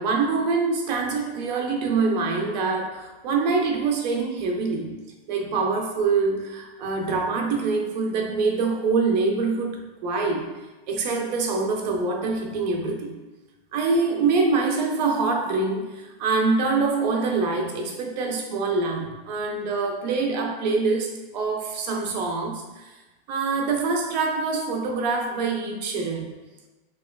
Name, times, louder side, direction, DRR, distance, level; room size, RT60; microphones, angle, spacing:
voice 1, 0.0-5.0 5.3-10.5 10.9-13.1 13.7-22.9 23.3-26.3, right 4 dB, 45° right, 2 dB, 0.5 m, -25 dB
4.2 x 2.4 x 2.2 m, 1.2 s
supercardioid pair, 160°, 30 cm